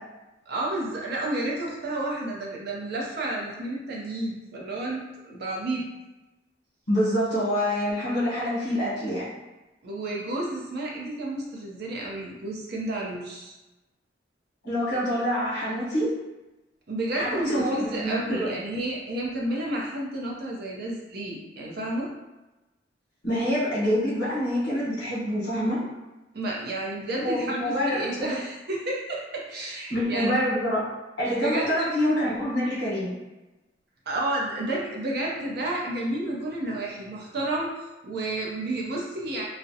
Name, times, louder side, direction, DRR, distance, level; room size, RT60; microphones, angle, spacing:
voice 1, 0.5-5.8 9.8-13.5 16.9-22.1 26.3-30.4 31.4-31.9 34.1-39.5, right 1 dB, 60° right, -3 dB, 0.5 m, -31 dB
voice 2, 6.9-9.3 14.6-16.1 17.1-18.5 23.2-25.8 27.2-28.4 29.9-30.9 31.2-33.1, equal, 75° left, -8 dB, 0.9 m, -26 dB
2.4 x 2.0 x 2.7 m, 1.1 s
head